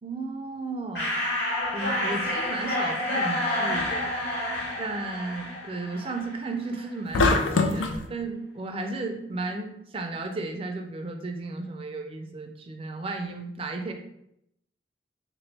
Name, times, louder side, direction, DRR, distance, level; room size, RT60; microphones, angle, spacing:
voice 1, 0.0-1.2 1.7-4.2 4.8-13.9, right 3 dB, 30° right, 4 dB, 0.4 m, -34 dB
sound 1, 1.0-6.5, left 1 dB, 60° left, 1.3 m, -29 dB
sound 2, 7.1-8.0, left 3 dB, 85° left, 0.4 m, -22 dB
3.3 x 2.9 x 3.3 m, 0.79 s
head